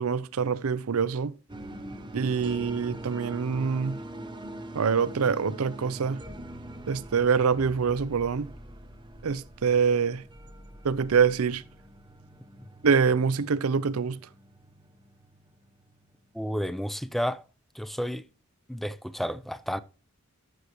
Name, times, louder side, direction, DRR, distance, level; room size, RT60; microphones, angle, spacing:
voice 1, 0.0-1.3 2.1-4.0 4.7-6.2 6.9-8.5 9.2-10.2 10.8-11.6 12.8-14.2, right 6 dB, 90° right, 0.5 m, -25 dB
sound 1, 1.5-16.6, right 1 dB, 20° right, 0.9 m, -44 dB
voice 2, 16.3-17.4 17.7-18.3 18.7-19.8, equal, ahead, 0.4 m, -31 dB
13.0 x 6.5 x 3.0 m
head